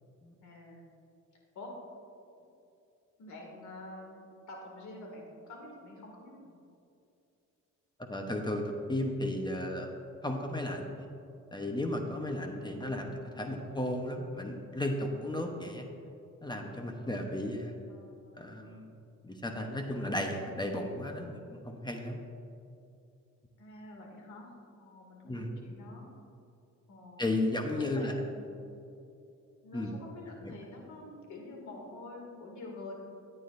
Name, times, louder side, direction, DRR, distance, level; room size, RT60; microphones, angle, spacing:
voice 1, 0.4-0.9 1.5-1.7 2.4-2.5 3.2-4.2 4.5-6.5 13.2-13.8 17.9-18.6 23.6-24.5 24.8-26.1 26.9-27.3 27.8-28.4 29.6-32.9, left 2 dB, 70° left, 0 dB, 2.4 m, -47 dB
voice 2, 8.1-9.9 10.2-11.1 11.5-15.9 16.4-17.8 18.4-18.9 19.2-22.2 25.2-25.5 27.2-28.1 29.7-29.9 30.4-30.5, left 1 dB, 15° left, 3 dB, 0.9 m, -34 dB
14.0 x 8.8 x 2.6 m, 2.6 s
cardioid pair, 90°, 30 cm